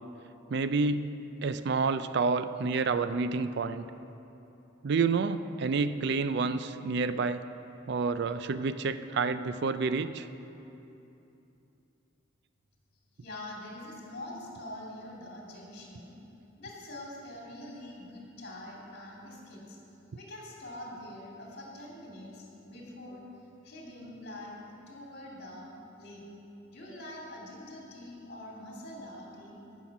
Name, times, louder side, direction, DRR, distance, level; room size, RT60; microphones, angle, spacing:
voice 1, 0.5-3.9 4.8-7.4 7.9-10.3, right 4 dB, 55° right, 12 dB, 0.4 m, -29 dB
voice 2, 13.2-16.1 16.6-19.8 20.2-23.2 23.6-25.7 26.0-26.2 26.7-29.6, left 1 dB, 50° left, -3 dB, 2.5 m, -44 dB
15.0 x 5.8 x 5.9 m, 2.9 s
head